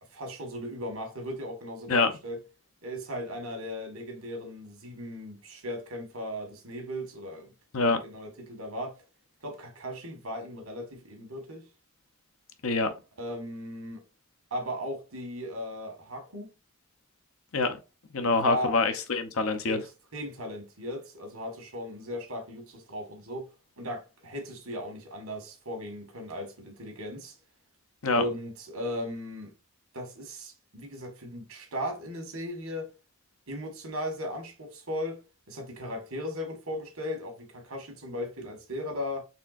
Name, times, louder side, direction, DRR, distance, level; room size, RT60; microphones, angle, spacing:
voice 1, 0.1-2.4 2.8-7.5 7.9-9.0 9.4-11.6 13.2-14.0 14.5-16.5 18.2-18.7 19.6-19.8 20.1-23.5 23.8-27.3 28.1-29.5 29.9-32.9 33.5-35.2 35.5-39.2, equal, 70° right, 1.6 m, -37 dB
voice 2, 12.6-12.9 17.5-17.8 18.1-19.8 28.0-28.2, left 3 dB, 65° left, 0.7 m, -25 dB
4.3 x 3.5 x 2.5 m
head